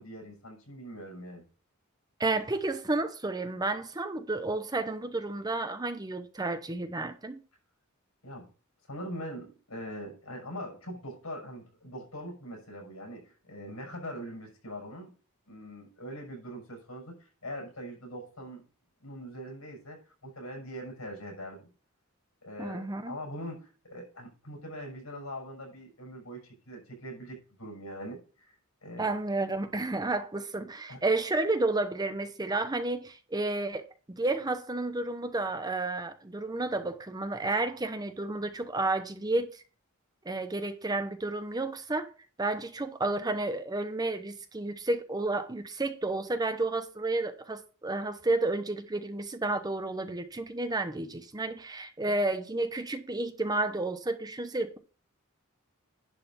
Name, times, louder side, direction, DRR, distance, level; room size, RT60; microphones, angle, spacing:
voice 1, 0.0-1.5 8.2-8.5 8.9-15.1 15.5-18.6 19.0-21.7 22.4-28.6 28.8-29.1 30.9-31.0 52.0-52.1, equal, 90° left, 6.0 m, -42 dB
voice 2, 2.2-7.4 22.6-23.1 29.0-39.6 40.2-42.1 42.4-54.8, right 2 dB, 20° right, 0.8 m, -31 dB
11.0 x 4.1 x 6.9 m
head